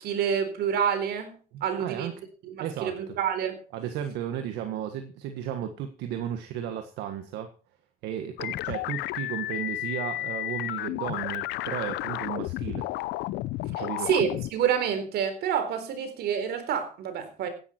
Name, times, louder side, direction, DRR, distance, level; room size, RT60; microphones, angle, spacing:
voice 1, 0.0-2.2 2.4-3.6 14.0-17.5, right 8 dB, 70° right, 4.0 m, -28 dB
voice 2, 1.5-2.1 2.6-3.2 3.7-7.5 8.0-12.9 13.8-14.1, right 10 dB, 85° right, 1.6 m, -34 dB
sound 1, 8.4-14.5, left 17 dB, 85° left, 0.7 m, -32 dB
16.0 x 11.5 x 4.4 m
cardioid pair, 110°, 17 cm